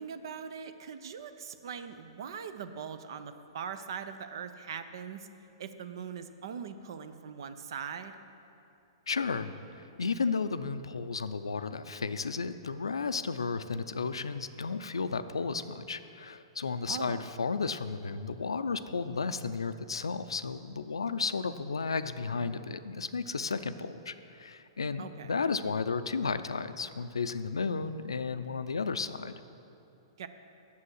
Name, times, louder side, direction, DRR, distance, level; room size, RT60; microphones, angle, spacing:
voice 1, 0.0-5.3 5.6-8.1 16.9-17.2 25.0-25.3 30.2-30.3, right 7 dB, 65° right, 10 dB, 0.6 m, -41 dB
voice 2, 9.1-9.5 10.0-29.4, left 4 dB, 85° left, 12 dB, 0.4 m, -33 dB
8.5 x 6.9 x 6.3 m, 2.7 s
hypercardioid pair, 115°, 3 cm